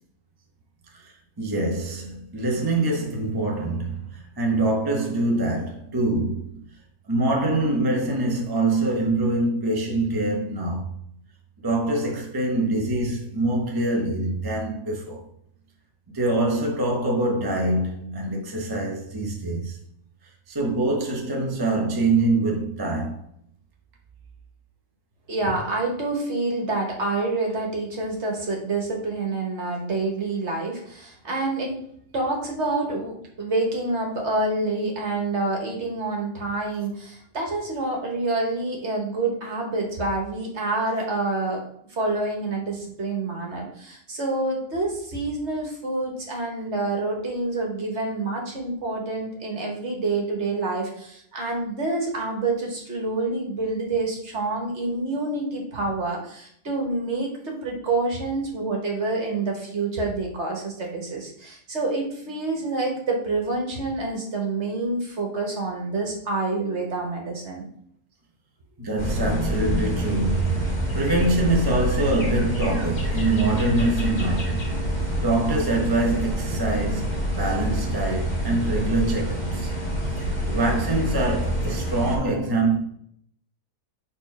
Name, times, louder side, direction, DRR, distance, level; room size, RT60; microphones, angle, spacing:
voice 1, 0.9-6.6 7.1-10.9 11.6-15.3 16.1-19.8 20.5-23.2 68.8-74.7 75.2-79.7 80.5-82.8, right 2 dB, 20° right, 0.7 m, -24 dB
voice 2, 25.3-31.8 32.1-41.6 41.9-67.6, right 2 dB, 45° right, 1.5 m, -27 dB
sound 1, 69.0-82.2, equal, 30° left, 1.4 m, -27 dB
4.5 x 3.9 x 5.4 m
omnidirectional pair, 1.7 m